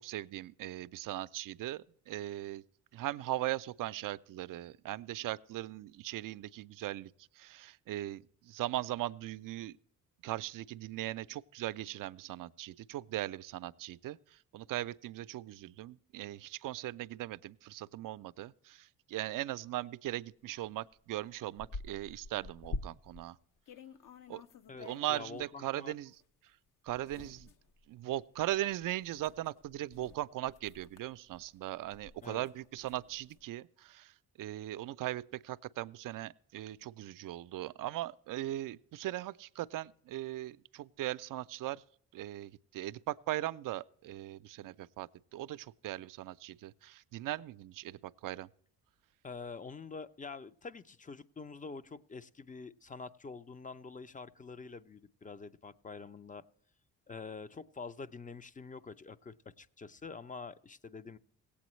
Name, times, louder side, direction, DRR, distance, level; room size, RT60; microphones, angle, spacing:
voice 1, 0.0-2.6 2.9-7.1 7.4-9.8 10.2-23.4 24.3-24.4 24.8-26.2 26.8-27.5 27.9-41.8 42.1-48.5, right 15 dB, 60° right, 0.4 m, -39 dB
sound 1, 20.6-20.7 21.1-23.3 23.7-25.5 26.1-26.2 26.9-33.4, left 3 dB, 60° left, 0.7 m, -48 dB
voice 2, 24.7-25.9 32.2-32.5 49.2-56.4 57.1-61.2, left 4 dB, 20° left, 0.5 m, -46 dB
17.5 x 8.5 x 3.1 m
supercardioid pair, 60°, 37 cm